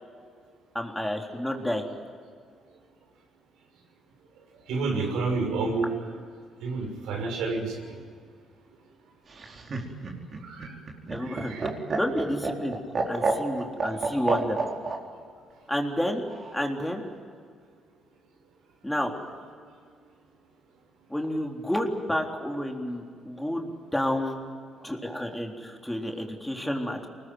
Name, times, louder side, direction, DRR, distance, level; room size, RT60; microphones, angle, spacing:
voice 1, 0.7-1.8 11.1-11.5 11.9-12.8 13.1-14.6 15.7-16.2 16.5-17.0 18.8-19.1 21.1-24.4 24.8-27.1, left 1 dB, 5° left, 1 dB, 3.9 m, -30 dB
voice 2, 4.5-5.9 6.6-8.0 10.4-10.8 11.2-11.7 13.4-13.6 14.1-14.2, right 3 dB, 85° right, 2 dB, 6.2 m, -30 dB
Laughter, 9.3-15.0 16.3-16.9, right 4 dB, 45° right, 4.8 m, -29 dB
24.5 x 20.0 x 9.4 m, 2.1 s
supercardioid pair, 75°, 0 cm